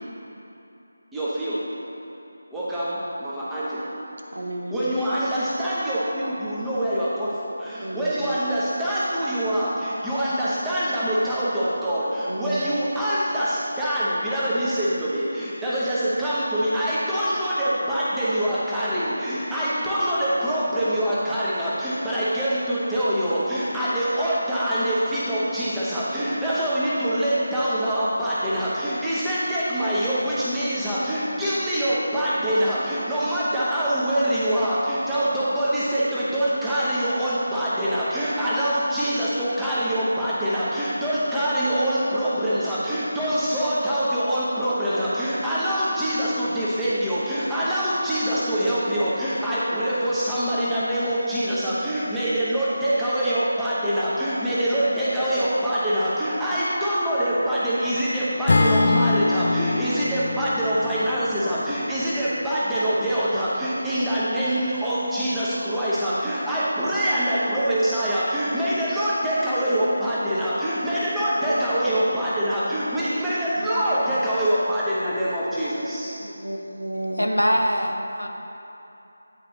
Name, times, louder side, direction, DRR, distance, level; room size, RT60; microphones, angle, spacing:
voice 1, 1.1-1.6 2.5-3.9 4.7-76.2, equal, 5° right, -11 dB, 1.0 m, -24 dB
voice 2, 4.3-4.8 7.8-8.3 12.3-12.6 19.9-20.0 54.8-55.6 65.9-66.9 71.3-72.0 73.5-74.1 76.2-77.3, right 1 dB, 75° right, 2 dB, 0.8 m, -33 dB
Acoustic guitar / Strum, 58.5-62.7, left 3 dB, 45° left, 0.4 m, -24 dB
voice 3, 77.2-78.3, equal, 90° left, 3 dB, 0.7 m, -22 dB
9.7 x 4.5 x 3.9 m, 2.9 s
figure-of-eight pair, 160°, 0 cm